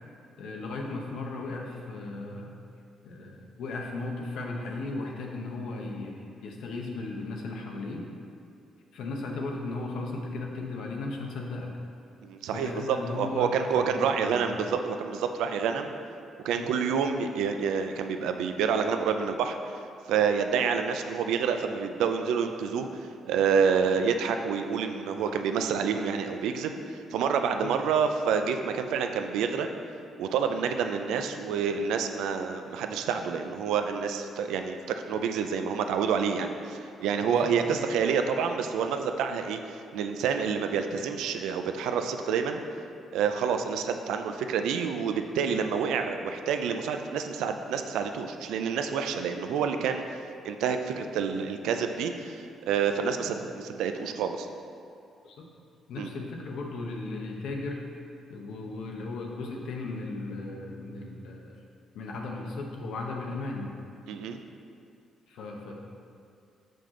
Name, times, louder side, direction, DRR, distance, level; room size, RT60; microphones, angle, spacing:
voice 1, 0.4-2.5 3.0-8.0 8.9-11.7 12.5-14.6 16.5-16.8 27.6-27.7 37.2-37.8 53.0-53.3 55.2-55.5 55.9-57.8 58.3-61.6 61.9-63.7 65.3-65.8, left 3 dB, 80° left, 0 dB, 0.9 m, -36 dB
voice 2, 12.2-15.9 16.4-19.6 20.1-22.9 23.3-26.7 27.1-29.7 30.2-42.6 43.1-50.2 50.4-54.5 56.0-56.1 64.1-64.4, right 6 dB, 90° right, 6 dB, 0.4 m, -28 dB
5.8 x 5.2 x 3.7 m, 2.5 s
cardioid pair, 90°, 0 cm